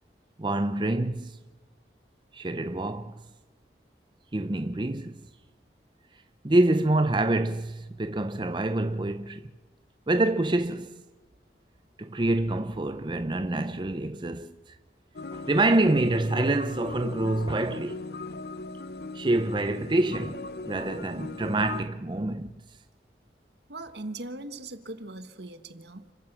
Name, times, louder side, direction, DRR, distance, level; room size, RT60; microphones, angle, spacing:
voice 1, 0.4-1.4 2.3-3.2 4.3-5.2 6.4-9.5 10.1-11.0 12.0-14.8 15.3-18.0 19.1-22.5, right 2 dB, 25° right, 0.6 m, -26 dB
sound 1, 15.2-21.8, left 3 dB, 60° left, 0.8 m, -39 dB
voice 2, 23.7-26.1, right 2 dB, 70° right, 1.5 m, -40 dB
30.0 x 14.5 x 6.2 m
head